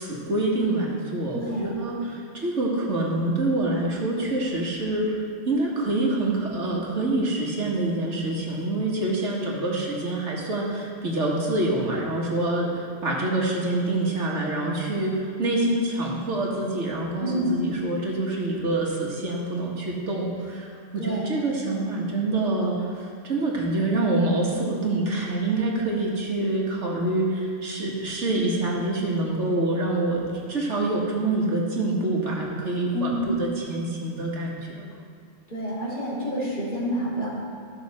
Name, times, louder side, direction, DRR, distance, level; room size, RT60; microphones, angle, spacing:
voice 1, 0.0-34.9, right 2 dB, 75° right, -3 dB, 1.9 m, -26 dB
voice 2, 1.3-1.7 17.2-17.6 21.0-21.4 32.9-33.3 35.5-37.3, equal, 40° left, -8 dB, 3.3 m, -28 dB
14.0 x 6.4 x 4.2 m, 2.3 s
omnidirectional pair, 1.2 m